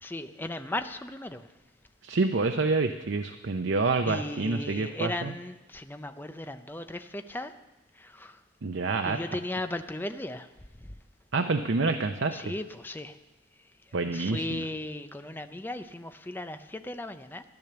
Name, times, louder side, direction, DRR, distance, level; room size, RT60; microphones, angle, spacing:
voice 1, 0.0-1.5 4.1-7.5 7.9-8.4 9.0-10.5 10.8-10.9 12.3-13.2 14.0-17.4, left 1 dB, 10° left, 9 dB, 0.6 m, -36 dB
voice 2, 2.0-5.3 8.6-9.2 11.3-12.5 13.9-14.6, right 3 dB, 80° right, 6 dB, 0.7 m, -27 dB
12.5 x 10.0 x 6.8 m, 1.1 s
head